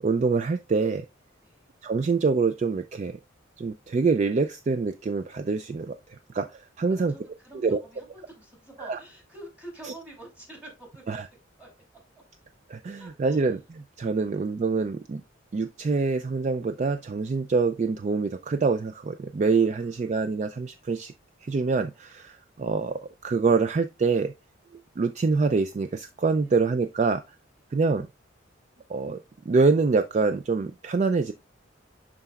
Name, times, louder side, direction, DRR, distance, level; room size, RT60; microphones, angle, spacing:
voice 1, 0.0-1.1 1.8-3.2 3.6-7.1 7.6-7.8 8.8-9.0 11.1-11.2 12.7-15.2 15.5-21.1 21.4-24.3 25.0-27.2 27.7-28.1 28.9-31.3, right 4 dB, 35° right, 0.3 m, -25 dB
voice 2, 6.9-11.2 11.6-12.0 12.9-13.5 14.2-14.5 19.6-19.8 26.4-26.5 27.6-27.7, right 1 dB, 10° right, 2.7 m, -47 dB
11.0 x 4.0 x 2.3 m
head